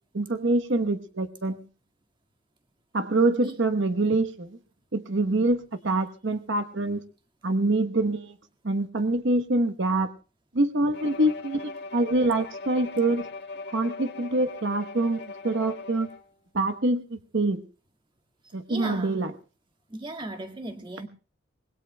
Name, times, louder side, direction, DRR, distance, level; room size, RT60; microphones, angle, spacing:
voice 1, 0.1-1.6 2.9-4.5 4.9-7.0 7.4-8.3 8.6-10.1 10.5-13.3 13.7-16.1 16.5-17.6 18.5-19.3, right 2 dB, 60° right, 9 dB, 1.0 m, -25 dB
Bowed string instrument, 10.9-16.3, left 3 dB, 55° left, 1.7 m, -40 dB
voice 2, 18.4-19.2 19.9-21.1, right 2 dB, 25° right, 6 dB, 1.8 m, -37 dB
25.5 x 20.5 x 2.2 m, 0.36 s
head